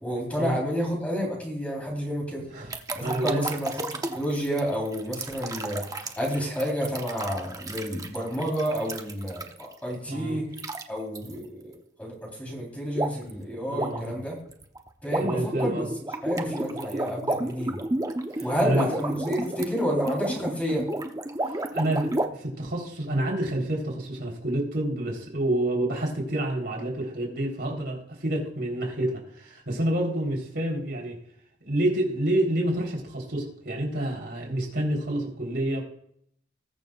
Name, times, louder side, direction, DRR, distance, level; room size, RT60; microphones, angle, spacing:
voice 1, 0.0-2.5 2.9-10.5 10.9-14.4 15.0-15.8 16.2-17.8 18.4-20.9, equal, 10° left, -2 dB, 3.7 m, -30 dB
sound 1, 2.7-9.7 10.5-10.8 11.1-11.3 12.9-13.3 13.6-22.3, right 2 dB, 20° right, 0.8 m, -32 dB
voice 2, 3.0-3.4 10.1-10.4 13.7-14.1 15.2-15.9 18.3-18.8 21.4-31.2 31.7-35.8, right 1 dB, 60° right, -1 dB, 3.7 m, -28 dB
21.0 x 7.0 x 2.4 m, 0.69 s
head